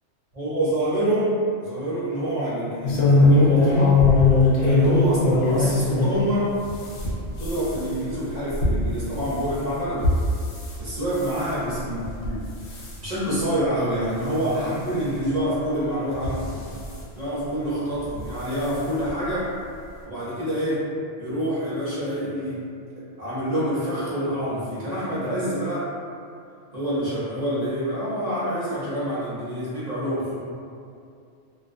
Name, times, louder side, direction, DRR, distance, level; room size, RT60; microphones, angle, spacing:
voice 1, 0.3-4.0 4.6-6.5 7.3-10.1 10.8-12.4 12.7-16.6 17.1-19.5 20.1-20.9 21.2-22.6 23.2-25.9 26.7-30.4, right 1 dB, 40° right, -10 dB, 0.6 m, -27 dB
sound 1, 2.8-6.2 6.6-10.8 11.1-11.5 12.0-12.4 12.7-13.0 13.6-13.7 14.0-14.1 15.3-15.4 16.1-16.9 18.1-18.3 18.6-18.7 19.1-19.2, left 2 dB, 85° left, 0.9 m, -20 dB
2.4 x 2.2 x 2.4 m, 2.4 s
omnidirectional pair, 1.3 m